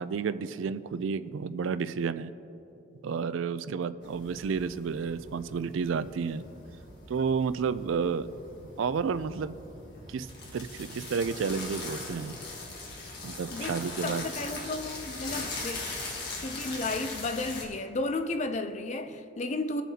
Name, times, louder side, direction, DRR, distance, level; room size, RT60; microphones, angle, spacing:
voice 1, 0.0-2.3 3.0-6.4 7.1-8.3 8.8-9.6 10.1-10.3 10.5-12.4 13.2-14.2, right 5 dB, 75° right, 0.4 m, -31 dB
sound 1, 4.0-17.6, left 2 dB, 55° left, 1.7 m, -41 dB
voice 2, 13.5-15.9 16.4-19.8, left 2 dB, 35° left, 0.4 m, -33 dB
20.5 x 7.1 x 2.8 m
head